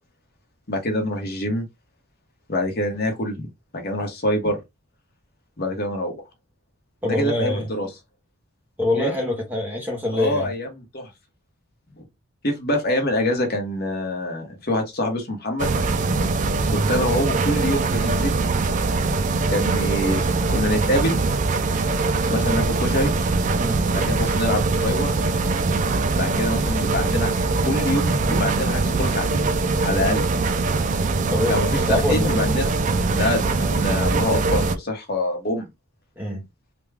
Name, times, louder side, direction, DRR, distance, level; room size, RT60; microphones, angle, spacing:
voice 1, 0.7-1.7 2.5-3.5 3.7-4.6 5.6-6.1 7.0-7.9 8.9-9.1 10.1-11.1 12.0-12.1 12.4-15.7 16.9-18.4 19.5-21.2 22.3-23.1 23.9-25.1 26.1-27.3 27.6-29.5 29.8-30.2 31.5-32.7 33.0-35.7, left 1 dB, 45° left, 1.0 m, -25 dB
voice 2, 7.0-7.7 8.8-10.5 16.7-16.9 23.6-23.8 31.3-32.4 36.2-36.5, left 1 dB, 10° right, 0.8 m, -25 dB
sound 1, 15.6-34.8, right 3 dB, 35° right, 0.3 m, -22 dB
3.4 x 2.3 x 3.3 m
head